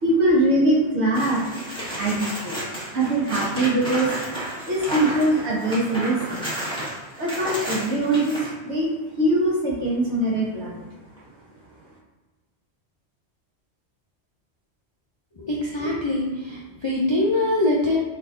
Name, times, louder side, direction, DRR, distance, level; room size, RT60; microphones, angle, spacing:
voice 1, 0.0-1.6 2.0-2.5 2.9-4.1 4.6-6.4 7.2-8.9 9.2-10.8, right 1 dB, 75° right, -4 dB, 1.3 m, -22 dB
sound 1, 1.1-8.5 11.2-11.3, equal, 5° left, 1.0 m, -32 dB
voice 2, 15.4-18.0, left 1 dB, 50° left, -5 dB, 0.3 m, -23 dB
3.7 x 3.2 x 2.5 m, 1.3 s
omnidirectional pair, 1.1 m